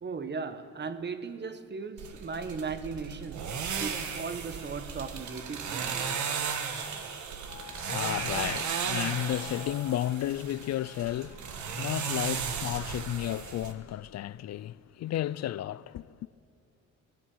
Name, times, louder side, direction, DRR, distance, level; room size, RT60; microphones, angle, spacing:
voice 1, 0.0-6.3, right 5 dB, 35° right, 1.2 m, -37 dB
sound 1, 2.0-13.7, right 6 dB, 70° right, 1.6 m, -35 dB
voice 2, 7.5-16.3, left 13 dB, 60° left, 0.5 m, -33 dB
18.5 x 16.5 x 8.9 m
cardioid pair, 90°, 30 cm